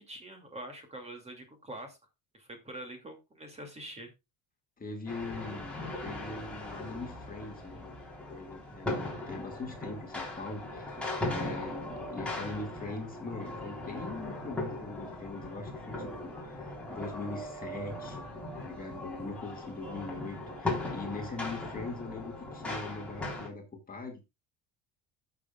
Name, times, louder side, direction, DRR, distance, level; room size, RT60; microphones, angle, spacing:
voice 1, 0.0-2.0 2.3-4.1, right 1 dB, 15° right, 2.6 m, -45 dB
voice 2, 4.8-18.3 18.6-24.3, left 3 dB, 25° left, 2.1 m, -42 dB
sound 1, 5.1-23.5, left 2 dB, 5° left, 3.9 m, -39 dB
15.5 x 7.0 x 2.4 m
cardioid pair, 140°, 37 cm